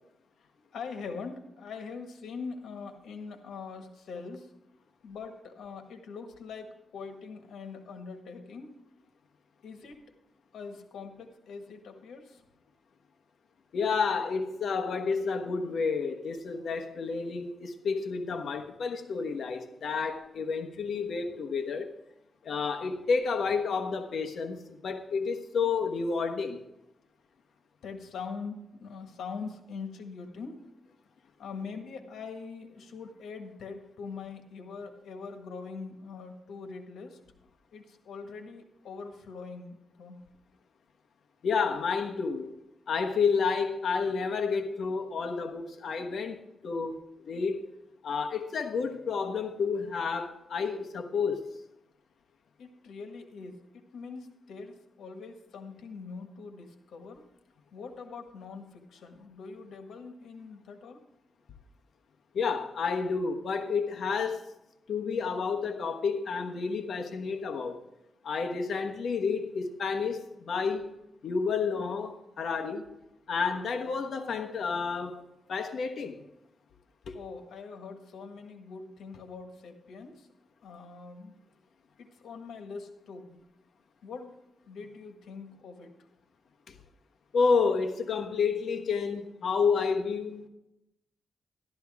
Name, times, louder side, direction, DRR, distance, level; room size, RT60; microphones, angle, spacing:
voice 1, 0.4-4.5 5.0-8.8 9.6-10.0 10.5-12.4 27.8-30.6 31.4-37.2 37.7-40.2 52.6-57.2 57.7-61.0 77.1-80.3 80.6-81.3 82.0-83.4 84.0-84.4 84.7-85.9, left 5 dB, 90° left, 1.7 m, -43 dB
voice 2, 13.7-21.9 22.4-26.6 41.4-42.6 42.9-46.4 46.6-47.0 47.3-47.7 48.0-51.4 62.3-64.4 64.9-67.8 68.2-70.9 71.2-72.8 73.3-75.2 75.5-76.2 77.1-77.2 86.7-86.8 87.3-90.5, left 5 dB, 70° left, 1.2 m, -30 dB
12.5 x 12.5 x 3.6 m
cardioid pair, 105°, 0 cm